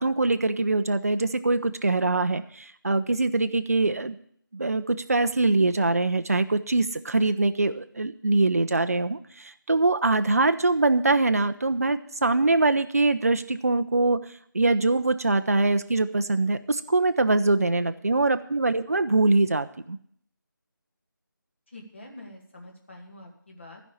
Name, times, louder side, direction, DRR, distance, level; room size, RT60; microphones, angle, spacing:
voice 1, 0.0-4.2 4.5-20.0, right 2 dB, 45° right, 10 dB, 0.6 m, -23 dB
voice 2, 17.7-18.3 21.7-23.8, left 1 dB, 35° left, 0 dB, 2.0 m, -46 dB
13.0 x 5.3 x 8.6 m, 0.64 s
figure-of-eight pair, 180°, 11 cm